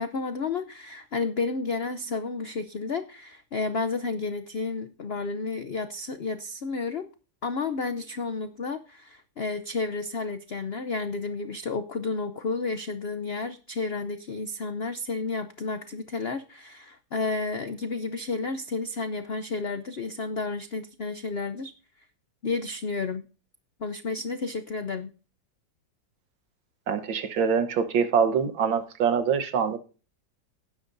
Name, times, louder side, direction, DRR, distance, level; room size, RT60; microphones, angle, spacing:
voice 1, 0.0-7.1 7.4-21.7 22.4-23.2 23.8-25.1, left 3 dB, 85° left, 0.5 m, -31 dB
voice 2, 26.9-29.8, right 6 dB, 80° right, 1.9 m, -24 dB
18.0 x 10.5 x 2.6 m
omnidirectional pair, 2.0 m